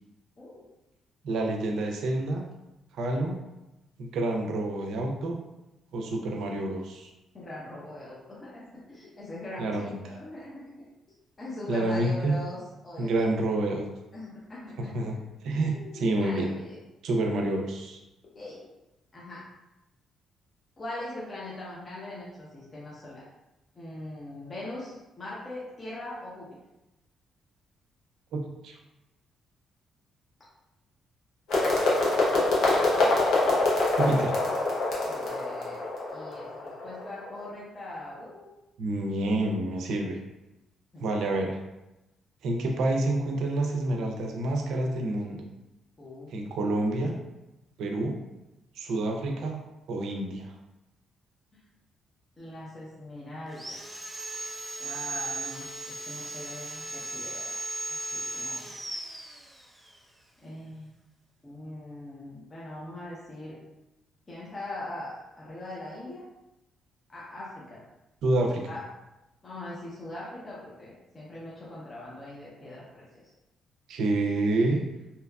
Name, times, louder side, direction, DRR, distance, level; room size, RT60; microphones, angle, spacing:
voice 1, 1.2-2.4 2.9-3.3 4.0-5.4 5.9-7.1 9.6-10.0 11.7-12.4 13.0-13.9 14.9-15.2 15.4-16.5 17.0-18.0 28.3-28.8 33.9-34.3 38.8-40.2 41.0-41.6 42.4-45.5 46.3-47.1 47.8-48.2 48.8-49.6 49.9-50.5 68.2-68.7 73.9-74.8, right 2 dB, 75° right, 2 dB, 0.4 m, -28 dB
voice 2, 7.3-10.7 11.4-13.3 14.1-15.0 15.6-16.8 18.3-18.6 19.1-19.4 20.8-23.2 23.7-26.6 33.0-33.1 35.1-38.5 40.9-41.0 46.0-46.3 51.5-51.6 52.4-53.8 54.8-57.5 58.0-58.7 60.4-60.9 61.4-63.6 64.3-66.2 67.1-67.8 68.7-68.8 69.4-73.3, left 1 dB, 30° left, -7 dB, 0.7 m, -41 dB
sound 1, 31.5-37.4, left 2 dB, 75° left, 0.7 m, -25 dB
Sawing, 53.5-60.0, right 2 dB, 10° right, 0.4 m, -37 dB
2.8 x 2.3 x 2.3 m, 0.97 s
cardioid pair, 90°, 0 cm